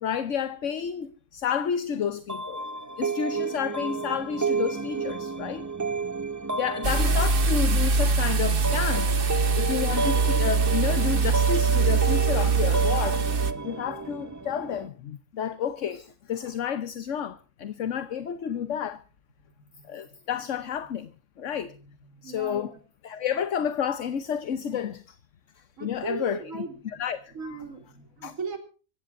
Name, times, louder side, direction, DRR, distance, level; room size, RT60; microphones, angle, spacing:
voice 1, 0.0-2.6 3.0-5.7 6.6-9.1 9.6-13.2 13.6-19.0 19.9-21.1 21.4-21.7 22.2-22.7 23.0-25.2 25.6-27.6 28.2-28.3, left 8 dB, 65° left, 1.3 m, -30 dB
sound 1, 2.3-14.9, right 3 dB, 20° right, 0.6 m, -31 dB
sound 2, 6.8-13.5, right 4 dB, 45° right, 1.2 m, -23 dB
voice 2, 6.8-7.2 19.7-19.9 22.1-22.8 25.8-27.0 27.3-28.6, right 3 dB, 75° right, 3.7 m, -37 dB
25.5 x 15.0 x 2.6 m
omnidirectional pair, 1.4 m